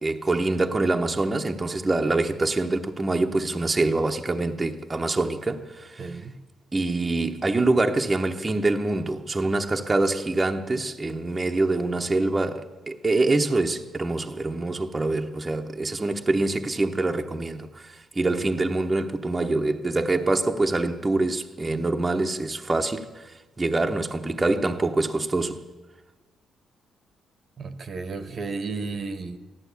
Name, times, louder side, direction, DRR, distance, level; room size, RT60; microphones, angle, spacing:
voice 1, 0.0-6.2 6.7-23.3 23.6-25.6, right 2 dB, 20° right, 1.0 m, -25 dB
voice 2, 6.0-6.3 27.6-29.4, right 4 dB, 50° right, 1.1 m, -33 dB
14.5 x 11.5 x 8.4 m
cardioid pair, 90°, 0 cm